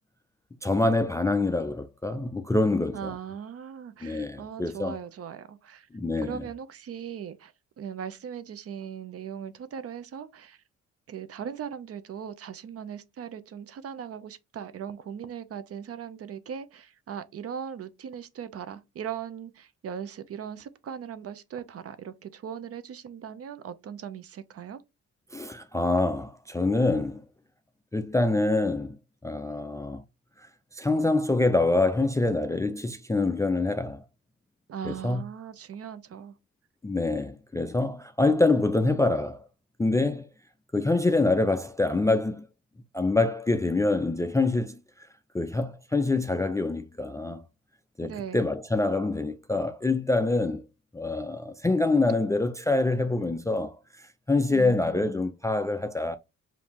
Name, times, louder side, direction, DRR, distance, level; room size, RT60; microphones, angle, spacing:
voice 1, 0.6-3.1 4.0-5.0 5.9-6.4 25.3-27.2 27.9-29.0 29.2-30.0 30.7-34.0 34.8-35.2 36.8-39.4 39.8-40.3 40.7-42.5 42.9-44.8 45.3-47.4 48.0-50.7 50.9-56.2, left 2 dB, 10° left, 0.3 m, -25 dB
voice 2, 2.9-5.9 6.2-10.6 11.1-24.8 34.7-36.4 48.0-48.4 54.5-55.2, right 8 dB, 50° right, 0.6 m, -39 dB
5.2 x 2.7 x 2.9 m
cardioid pair, 105°, 31 cm